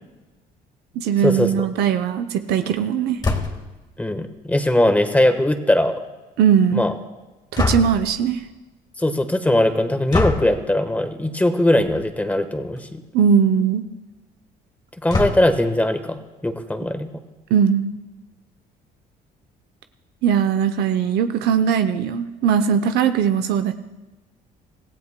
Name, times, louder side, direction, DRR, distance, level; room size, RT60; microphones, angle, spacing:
voice 1, 1.0-3.2 6.4-6.8 7.5-8.4 13.1-13.8 17.5-17.9 20.2-23.7, right 8 dB, 75° right, 8 dB, 0.7 m, -19 dB
sound 1, 3.2-3.8 7.6-8.2 10.1-10.6 11.8-12.0 12.4-12.5 12.8-12.9 15.1-15.7, left 3 dB, 25° left, 1.6 m, -24 dB
voice 2, 4.0-5.9 6.7-6.9 9.0-13.0 15.0-17.1, left 1 dB, 10° left, 7 dB, 1.2 m, -20 dB
25.5 x 15.5 x 2.2 m, 1.1 s
cardioid pair, 110°, 17 cm